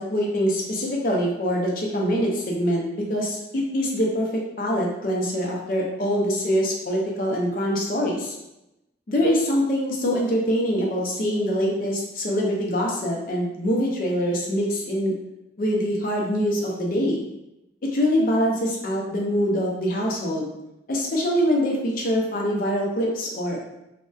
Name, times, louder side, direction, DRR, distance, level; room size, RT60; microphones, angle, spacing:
voice 1, 0.0-4.3 4.6-8.3 9.1-15.1 15.6-17.2 17.9-20.5 20.9-23.6, equal, 50° left, -1 dB, 0.5 m, -24 dB
2.6 x 2.1 x 2.3 m, 0.90 s
head